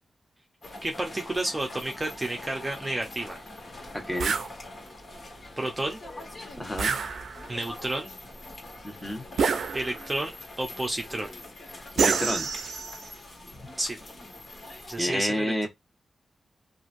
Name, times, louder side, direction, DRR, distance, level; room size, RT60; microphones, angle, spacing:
sound 1, 0.6-15.0, left 2 dB, 45° left, 1.4 m, -44 dB
voice 1, 0.8-3.4 5.6-6.0 7.5-8.1 9.7-11.3 13.8-14.0 14.9-15.7, right 1 dB, 25° right, 0.7 m, -31 dB
voice 2, 3.9-4.4 6.6-7.0 8.8-9.2 11.7-12.5 14.9-15.7, equal, 10° left, 1.2 m, -30 dB
sound 2, 4.2-4.5 6.8-7.6 9.4-10.2 12.0-13.1, right 5 dB, 85° right, 0.4 m, -27 dB
2.9 x 2.5 x 2.6 m
cardioid pair, 80°, 0 cm